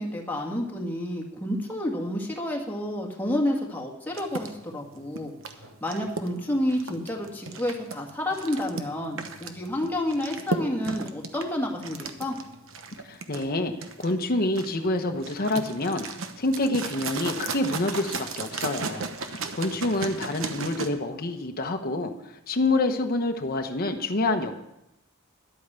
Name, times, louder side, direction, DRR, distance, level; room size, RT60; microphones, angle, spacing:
voice 1, 0.0-12.4, left 1 dB, 10° left, -1 dB, 2.0 m, -30 dB
sound 1, 4.1-20.9, right 4 dB, 70° right, 1.1 m, -36 dB
voice 2, 13.0-13.7 14.0-16.1 16.4-22.1 22.5-24.5, left 2 dB, 45° left, 5 dB, 1.0 m, -27 dB
11.5 x 8.5 x 6.9 m, 0.87 s
head